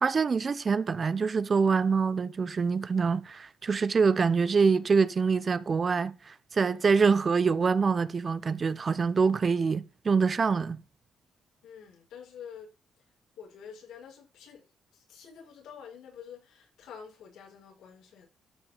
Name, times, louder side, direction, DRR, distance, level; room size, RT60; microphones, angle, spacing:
voice 1, 0.0-10.8, right 5 dB, 40° right, 0.8 m, -25 dB
voice 2, 11.6-12.7 13.4-14.6 14.9-18.2, left 7 dB, 80° left, 6.9 m, -48 dB
13.0 x 5.8 x 4.1 m
cardioid pair, 90°, 0 cm